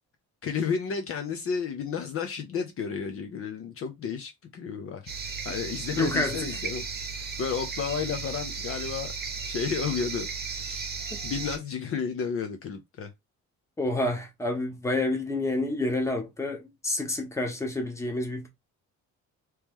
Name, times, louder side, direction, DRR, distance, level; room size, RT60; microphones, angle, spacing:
voice 1, 0.4-5.1 5.4-6.8 7.1-9.1 9.5-10.9 11.2-13.1, left 6 dB, 50° left, 0.6 m, -32 dB
sound 1, 5.1-11.6, right 5 dB, 30° right, 0.9 m, -35 dB
voice 2, 6.0-6.3 13.8-18.5, left 2 dB, 10° left, 0.9 m, -28 dB
3.0 x 3.0 x 3.5 m
cardioid pair, 170°, 30 cm